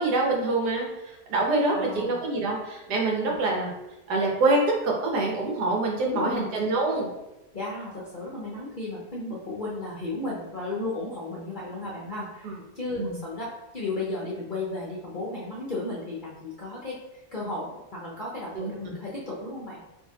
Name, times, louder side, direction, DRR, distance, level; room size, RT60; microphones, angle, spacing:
voice 1, 0.0-3.7 4.1-7.1 12.4-12.5 13.0-13.2 18.5-18.7, right 2 dB, 85° right, -1 dB, 1.4 m, -25 dB
voice 2, 1.7-2.2 3.3-3.4 6.0-6.6 7.5-19.8, left 2 dB, 50° left, -6 dB, 0.6 m, -34 dB
4.6 x 2.7 x 2.8 m, 0.96 s
omnidirectional pair, 1.7 m